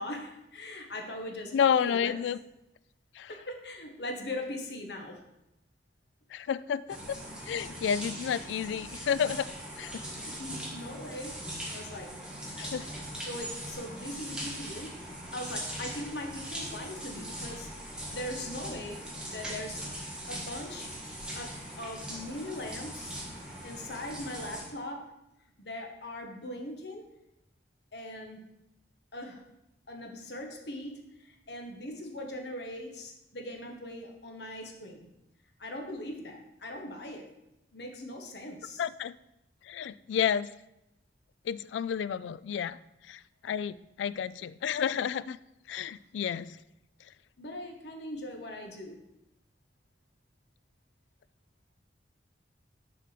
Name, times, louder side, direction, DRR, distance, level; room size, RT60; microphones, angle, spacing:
voice 1, 0.0-1.5 1.8-2.1 3.3-5.2 10.1-12.1 13.2-19.0 19.3-19.8 20.3-20.9 21.3-23.2 23.6-25.1 25.6-27.1 27.9-28.4 29.1-29.4 29.9-35.1 35.6-37.3 37.7-38.8 47.4-49.0, left 1 dB, 65° left, 3 dB, 1.3 m, -40 dB
voice 2, 1.5-2.4 3.1-3.3 6.3-7.2 7.4-10.0 12.6-12.9 38.8-39.1 39.6-40.5 41.5-42.8 43.0-45.4 45.7-46.6, left 7 dB, 85° left, 18 dB, 0.3 m, -31 dB
sound 1, 6.9-24.6, equal, 5° right, 1.5 m, -40 dB
6.8 x 4.9 x 5.9 m, 0.87 s
head